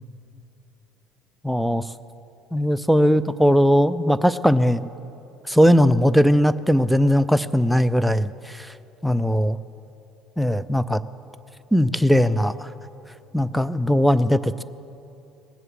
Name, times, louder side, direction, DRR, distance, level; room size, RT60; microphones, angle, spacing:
voice 1, 1.4-1.9 2.5-4.9 5.5-8.7 9.0-9.6 10.4-11.0 11.7-12.7 13.3-14.6, equal, ahead, 12 dB, 0.5 m, -19 dB
19.0 x 7.9 x 7.8 m, 2.8 s
hypercardioid pair, 70°, 0 cm